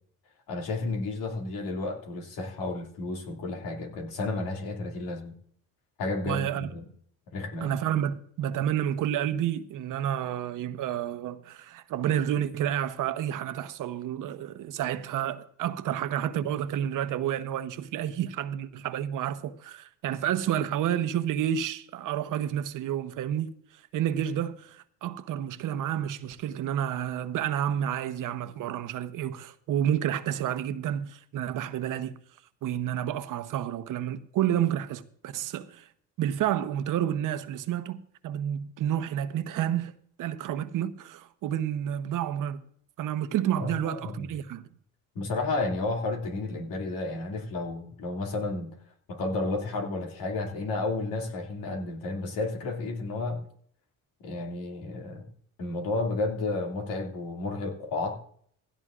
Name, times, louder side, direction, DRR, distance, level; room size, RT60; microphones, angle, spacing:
voice 1, 0.5-5.3 6.0-6.8 7.3-7.8 43.6-44.3 45.1-48.8 49.1-53.4 54.2-55.3 55.6-58.1, left 2 dB, 75° left, 2.6 m, -32 dB
voice 2, 6.2-6.7 7.6-23.5 23.9-32.2 32.6-35.9 36.2-42.6 43.0-44.6, right 10 dB, 65° right, 0.9 m, -30 dB
16.5 x 15.0 x 2.5 m
cardioid pair, 90°, 34 cm